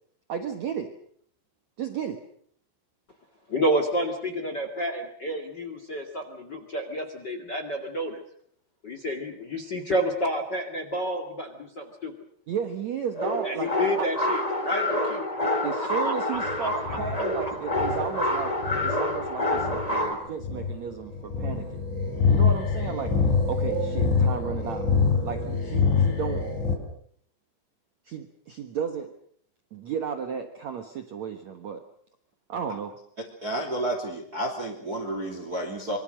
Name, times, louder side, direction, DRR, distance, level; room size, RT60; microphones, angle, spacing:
voice 1, 0.3-0.9 1.8-2.2 12.5-13.7 14.0-14.1 15.6-18.6 18.8-21.8 22.3-23.1 23.5-24.9 25.2-26.5 28.0-29.1 29.7-31.8 32.5-33.0, right 7 dB, 85° right, 6 dB, 1.5 m, -33 dB
voice 2, 3.5-8.2 8.8-12.1 13.4-15.5 15.8-17.2, equal, 45° left, 6 dB, 1.4 m, -30 dB
sound 1, 13.1-20.1, left 1 dB, 10° left, 2.5 m, -27 dB
sound 2, 16.3-26.7, left 5 dB, 75° left, 6.3 m, -26 dB
voice 3, 33.4-36.0, right 1 dB, 25° right, 4 dB, 2.6 m, -31 dB
25.5 x 24.0 x 6.5 m, 0.64 s
omnidirectional pair, 5.5 m